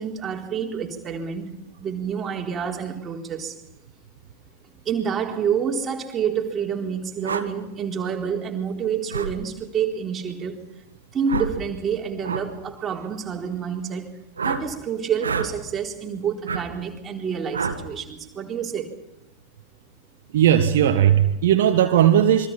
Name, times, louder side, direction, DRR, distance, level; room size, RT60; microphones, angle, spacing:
voice 1, 0.0-1.5 1.8-3.6 4.9-10.6 11.1-14.1 14.4-18.9, right 7 dB, 25° right, 4.0 m, -28 dB
sound 1, 7.2-7.5 9.1-9.3 11.3-11.6 12.2-12.5 14.4-14.6 15.2-15.5 16.5-16.6 17.5-17.8, right 5 dB, 70° right, 2.2 m, -27 dB
voice 2, 20.3-22.5, right 10 dB, 55° right, 1.7 m, -17 dB
27.5 x 24.0 x 5.7 m
figure-of-eight pair, 90°, 0 cm